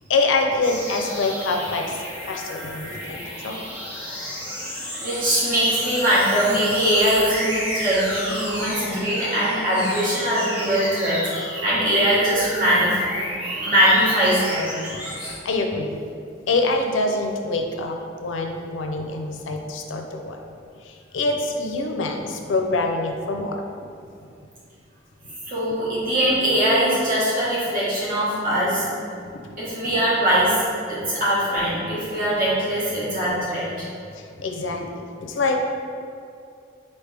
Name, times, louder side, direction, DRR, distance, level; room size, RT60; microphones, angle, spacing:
voice 1, 0.1-2.0 2.3-3.6 15.1-16.0 16.5-20.4 20.8-23.6 29.4-29.5 34.2-35.6, left 3 dB, 90° left, 3 dB, 0.5 m, -25 dB
sound 1, 0.6-15.3, equal, 10° right, 1.3 m, -32 dB
voice 2, 5.0-13.0 13.6-14.7 25.4-28.8 29.6-30.5 30.9-33.8, equal, 45° right, -9 dB, 1.3 m, -21 dB
4.3 x 3.3 x 3.3 m, 2.4 s
head